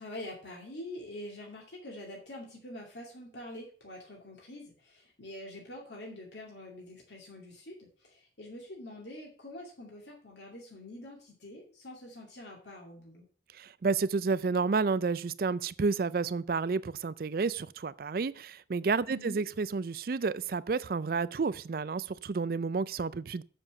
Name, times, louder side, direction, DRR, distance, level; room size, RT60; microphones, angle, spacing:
voice 1, 0.0-13.3 19.1-19.4, left 1 dB, 80° left, 2.3 m, -45 dB
voice 2, 13.6-23.4, right 4 dB, 55° right, 0.4 m, -30 dB
7.3 x 7.1 x 6.4 m
head